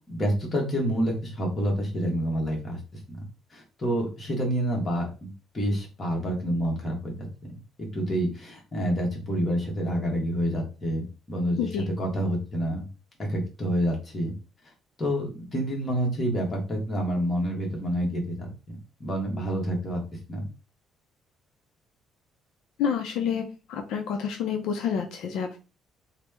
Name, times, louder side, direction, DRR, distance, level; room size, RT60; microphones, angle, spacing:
voice 1, 0.1-2.8 3.1-3.2 3.5-5.3 5.5-7.3 7.9-11.7 12.0-12.9 13.2-14.3 15.0-18.5 19.0-20.0 20.3-20.4, equal, 20° left, -1 dB, 1.0 m, -28 dB
voice 2, 22.8-25.6, left 7 dB, 70° left, 4 dB, 0.4 m, -28 dB
3.0 x 2.0 x 3.3 m, 0.31 s
cardioid pair, 160°, 0 cm